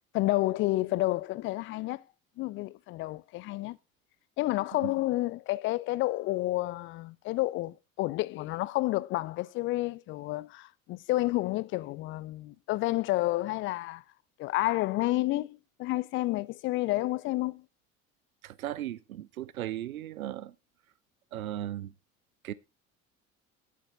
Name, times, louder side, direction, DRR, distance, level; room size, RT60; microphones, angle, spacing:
voice 1, 0.1-2.0 2.4-3.8 4.4-14.0 14.4-17.6, left 18 dB, 30° left, 0.4 m, -30 dB
voice 2, 18.4-20.5 21.3-21.9 22.4-22.5, right 12 dB, 80° right, 0.5 m, -36 dB
8.5 x 7.9 x 3.5 m
figure-of-eight pair, 65°, 42 cm